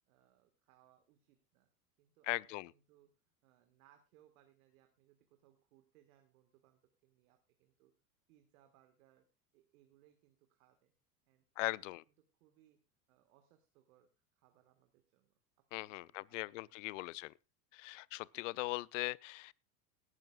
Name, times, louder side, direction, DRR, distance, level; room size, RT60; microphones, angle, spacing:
voice 1, 0.1-1.7 2.0-3.1 3.4-7.9 8.3-9.3 9.5-10.9 11.3-12.0 12.4-12.8 13.1-15.4 15.8-17.3 18.3-18.6, right 12 dB, 60° right, 1.8 m, -70 dB
voice 2, 2.2-2.7 11.6-12.0 15.7-17.3 17.7-19.5, left 22 dB, 50° left, 0.5 m, -40 dB
18.0 x 11.0 x 2.4 m
hypercardioid pair, 90°, 48 cm